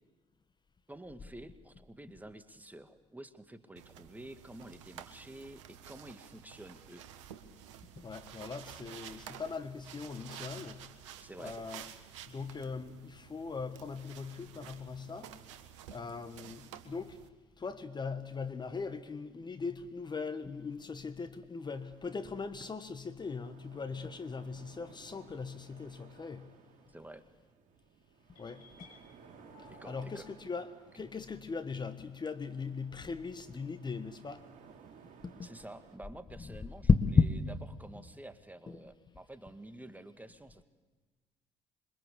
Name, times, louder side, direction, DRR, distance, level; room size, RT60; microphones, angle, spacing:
voice 1, 0.9-7.0 11.2-11.5 26.9-27.2 29.7-30.2 31.0-31.1 35.4-36.9 37.8-40.6, right 1 dB, 10° right, 2.0 m, -50 dB
sound 1, 3.8-17.3, right 9 dB, 75° right, 1.4 m, -51 dB
voice 2, 8.0-10.9 11.4-11.9 12.3-15.3 15.9-17.2 17.6-26.6 28.4-28.9 29.6-34.4 35.2-35.5 36.4-36.6 36.9-37.5 38.7-38.8, left 4 dB, 30° left, 1.5 m, -36 dB
sound 2, 21.6-36.0, right 6 dB, 55° right, 3.1 m, -59 dB
sound 3, 28.3-30.3, left 5 dB, 65° left, 6.6 m, -58 dB
26.5 x 23.5 x 8.4 m
figure-of-eight pair, 50°, 15 cm